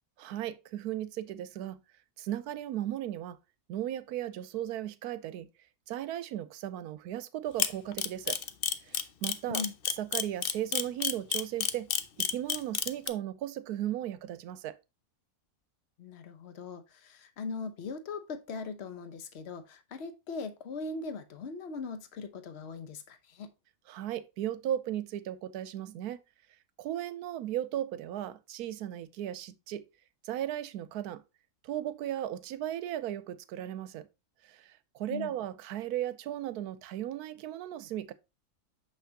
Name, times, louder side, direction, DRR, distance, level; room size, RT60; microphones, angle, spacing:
voice 1, 0.2-1.8 2.2-3.4 3.7-5.5 5.9-8.4 8.8-9.6 10.0-11.9 12.2-14.8 23.9-26.2 26.8-29.8 30.2-31.2 31.6-34.1 34.4-38.1, right 12 dB, 85° right, 1.1 m, -36 dB
Camera, 7.6-13.1, left 8 dB, 70° left, 0.5 m, -29 dB
voice 2, 16.0-23.5 35.1-35.3, left 4 dB, 50° left, 0.9 m, -40 dB
6.4 x 5.7 x 2.8 m
omnidirectional pair, 1.6 m